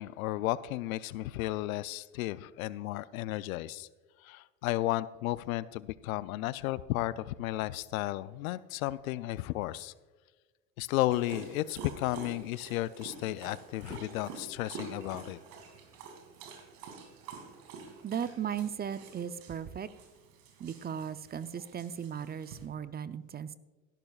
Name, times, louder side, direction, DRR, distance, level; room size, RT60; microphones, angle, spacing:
voice 1, 0.0-3.9 4.2-9.9 10.8-15.4, left 16 dB, 80° left, 18 dB, 0.6 m, -33 dB
Dog, 11.1-22.7, right 5 dB, 65° right, 2.6 m, -48 dB
voice 2, 18.0-19.9 20.6-23.6, right 8 dB, 25° right, 14 dB, 0.5 m, -37 dB
16.5 x 12.0 x 2.4 m, 1.3 s
hypercardioid pair, 80°, 41 cm